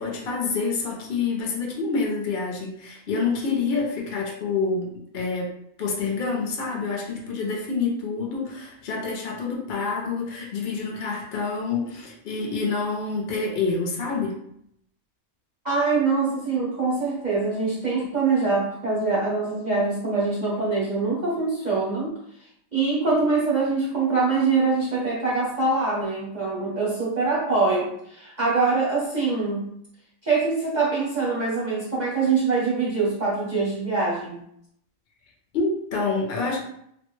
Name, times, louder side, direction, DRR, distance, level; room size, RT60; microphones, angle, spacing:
voice 1, 0.0-5.5 5.8-14.4 35.5-36.6, left 4 dB, 55° left, -1 dB, 0.7 m, -27 dB
voice 2, 15.6-22.2 22.7-29.7 30.2-34.4, right 4 dB, 45° right, -6 dB, 0.6 m, -24 dB
3.3 x 2.1 x 3.1 m, 0.72 s
omnidirectional pair, 1.4 m